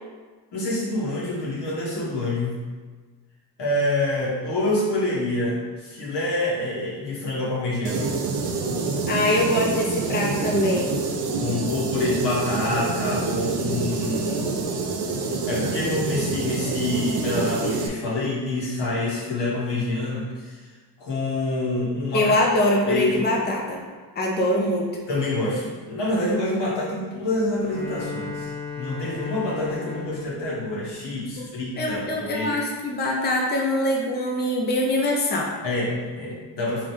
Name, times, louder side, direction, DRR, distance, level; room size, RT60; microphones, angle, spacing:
voice 1, 0.5-2.6 3.6-8.2 11.3-14.5 15.5-20.6 21.0-22.4 22.9-23.3 25.1-28.5 28.8-32.5 35.6-36.9, left 2 dB, 75° left, -5 dB, 1.4 m, -26 dB
sound 1, 7.8-17.9, right 4 dB, 65° right, 0.7 m, -27 dB
voice 2, 9.1-10.9 22.1-23.8 24.2-24.9 31.8-35.5, left 1 dB, 25° left, -1 dB, 0.7 m, -23 dB
Bowed string instrument, 27.6-31.9, left 5 dB, 90° left, 1.3 m, -36 dB
4.0 x 3.0 x 3.3 m, 1.4 s
cardioid pair, 70°, 43 cm